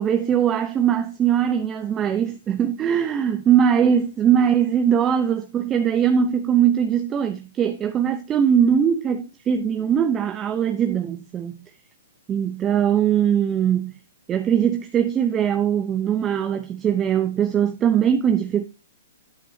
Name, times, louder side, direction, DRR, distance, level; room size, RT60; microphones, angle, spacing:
voice 1, 0.0-11.6 12.3-13.9 14.3-18.6, right 8 dB, 20° right, 0.6 m, -21 dB
9.2 x 8.1 x 2.7 m
hypercardioid pair, 145°, 0 cm